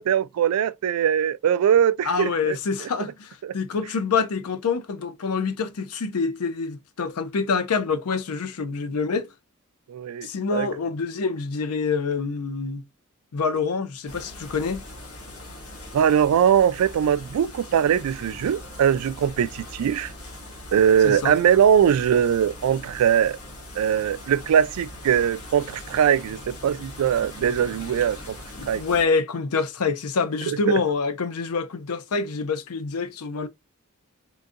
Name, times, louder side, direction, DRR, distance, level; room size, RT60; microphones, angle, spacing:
voice 1, 0.0-2.9 3.4-3.5 9.9-10.7 15.9-20.1 20.7-23.4 23.8-28.4 28.7-28.8 30.5-30.8, right 8 dB, 75° right, 0.3 m, -21 dB
voice 2, 2.0-9.3 10.2-12.8 13.3-14.8 21.0-21.3 28.6-33.5, left 4 dB, 90° left, 0.6 m, -26 dB
sound 1, 14.1-29.1, left 1 dB, 75° left, 1.5 m, -41 dB
3.7 x 2.6 x 2.4 m
head